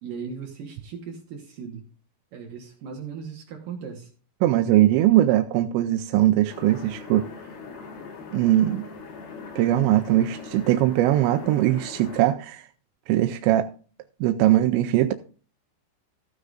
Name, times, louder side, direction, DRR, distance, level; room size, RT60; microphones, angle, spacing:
voice 1, 0.0-1.8 2.3-4.1, right 6 dB, 70° right, 2.1 m, -37 dB
voice 2, 4.4-7.3 8.3-8.9 9.6-12.7 13.1-13.7 14.2-15.1, right 14 dB, 85° right, 2.5 m, -20 dB
sound 1, 6.5-12.3, left 4 dB, 60° left, 3.1 m, -41 dB
15.5 x 9.5 x 2.5 m
omnidirectional pair, 5.7 m